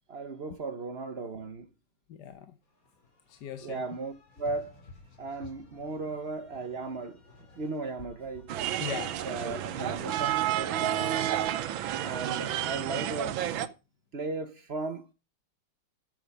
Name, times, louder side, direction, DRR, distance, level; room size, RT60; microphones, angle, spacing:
voice 1, 0.1-1.7 3.6-4.7 5.2-7.2 7.6-8.5 9.2-11.2 12.0-13.4 14.1-15.1, right 3 dB, 55° right, 0.6 m, -36 dB
voice 2, 2.1-2.5 3.3-3.9 8.8-10.1, left 8 dB, 60° left, 1.4 m, -41 dB
sound 1, 2.7-9.7, left 4 dB, 40° left, 3.1 m, -54 dB
sound 2, 8.5-13.7, right 11 dB, 75° right, 1.6 m, -30 dB
12.5 x 7.9 x 5.2 m
omnidirectional pair, 2.3 m